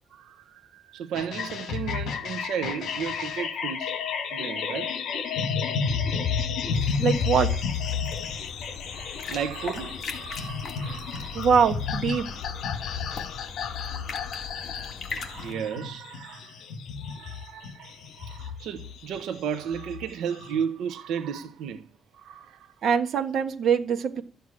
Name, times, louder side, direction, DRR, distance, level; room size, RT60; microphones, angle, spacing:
voice 1, 0.1-4.0 4.3-5.0 8.9-11.5 15.1-16.6 17.0-21.9 22.1-22.9, right 8 dB, 80° right, 0.9 m, -34 dB
sound 1, 1.1-20.6, left 6 dB, 60° left, 1.9 m, -32 dB
sound 2, 6.7-15.5, left 5 dB, 35° left, 2.0 m, -40 dB
voice 2, 7.0-7.5 11.3-12.3 22.8-24.2, right 6 dB, 50° right, 1.5 m, -23 dB
13.0 x 7.9 x 8.7 m
cardioid pair, 170°, 0 cm